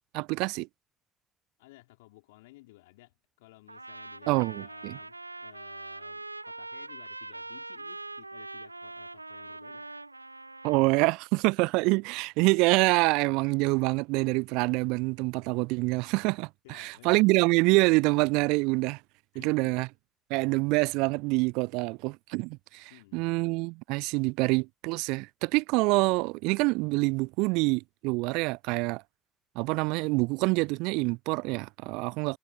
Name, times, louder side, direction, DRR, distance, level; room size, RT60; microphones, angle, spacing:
voice 1, 0.1-0.7 4.3-5.0 10.6-19.0 19.4-19.9 20.3-29.0 29.6-32.4, right 26 dB, 65° right, 0.3 m, -26 dB
voice 2, 1.6-9.9 16.6-17.3 19.3-19.9 22.9-23.2, left 21 dB, 70° left, 4.2 m, -56 dB
Trumpet, 3.7-11.1, right 2 dB, 90° right, 1.0 m, -43 dB
figure-of-eight pair, 50°, 0 cm